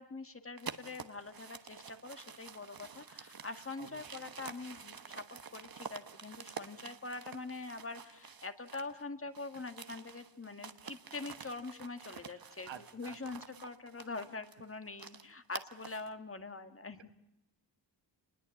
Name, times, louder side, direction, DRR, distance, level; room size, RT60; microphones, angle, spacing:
voice 1, 0.0-17.1, left 3 dB, 30° left, 8 dB, 1.8 m, -44 dB
sound 1, 0.6-9.0 9.3-16.1, right 6 dB, 55° right, 1.3 m, -49 dB
voice 2, 3.8-4.3 9.5-9.6 12.2-13.4, right 7 dB, 85° right, 9 dB, 1.5 m, -52 dB
29.0 x 20.5 x 8.5 m, 0.82 s
wide cardioid pair, 115°, 44 cm